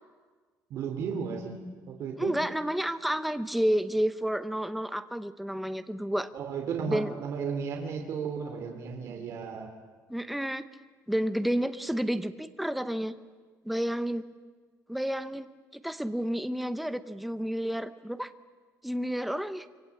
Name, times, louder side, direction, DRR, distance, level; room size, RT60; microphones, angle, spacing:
voice 1, 0.7-2.4 6.3-9.7, right 6 dB, 50° right, 2 dB, 2.9 m, -34 dB
voice 2, 2.2-6.3 6.9-7.1 10.1-10.6 11.1-13.1 13.6-14.2 14.9-15.5 15.7-18.3 18.8-19.7, equal, ahead, 10 dB, 0.8 m, -30 dB
25.5 x 24.0 x 8.5 m, 1.5 s
cardioid pair, 180°, 6 cm